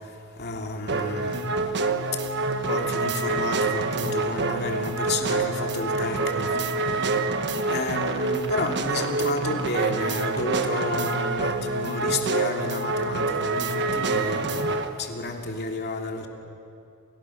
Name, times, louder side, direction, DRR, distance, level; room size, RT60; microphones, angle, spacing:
voice 1, 0.4-1.4 2.7-6.7 7.7-16.3, left 2 dB, 50° left, 2 dB, 2.8 m, -31 dB
sound 1, 0.9-14.9, right 3 dB, 50° right, 1.4 m, -26 dB
29.0 x 29.0 x 6.5 m, 2.5 s
head